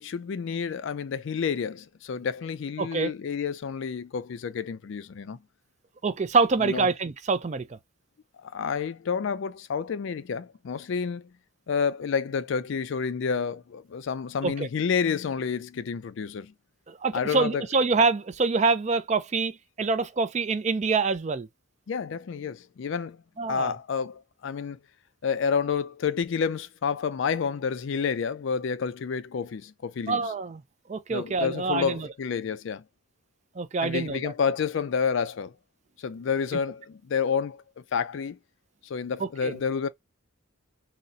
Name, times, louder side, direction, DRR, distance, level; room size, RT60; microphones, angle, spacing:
voice 1, 0.0-5.4 6.6-6.9 8.4-11.3 11.7-16.5 17.1-17.7 21.9-23.2 23.5-24.8 25.2-30.3 31.1-32.8 33.8-35.5 36.0-38.4 38.8-39.9, left 6 dB, 60° left, 0.4 m, -29 dB
voice 2, 2.8-3.1 6.0-7.6 14.4-14.7 16.9-21.5 23.4-23.7 30.1-30.6 30.9-32.1 33.6-34.3 39.4-39.6, right 4 dB, 35° right, 0.4 m, -26 dB
3.9 x 2.1 x 2.7 m
head